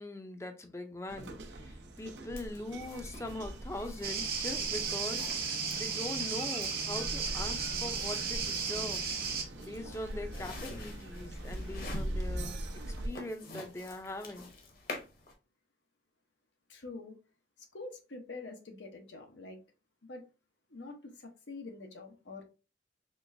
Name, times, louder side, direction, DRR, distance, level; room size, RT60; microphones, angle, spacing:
voice 1, 0.0-9.0 9.6-12.6 13.0-14.5, left 1 dB, 15° left, 0.5 m, -42 dB
sound 1, 1.1-13.1, right 1 dB, 80° right, 0.7 m, -42 dB
sound 2, 2.4-15.3, left 2 dB, 50° left, 1.0 m, -49 dB
sound 3, 4.0-9.4, right 5 dB, 55° right, 1.0 m, -34 dB
voice 2, 16.7-17.1 17.7-19.6 20.0-20.2 20.7-22.4, left 3 dB, 90° left, 1.0 m, -46 dB
4.5 x 3.2 x 2.6 m
head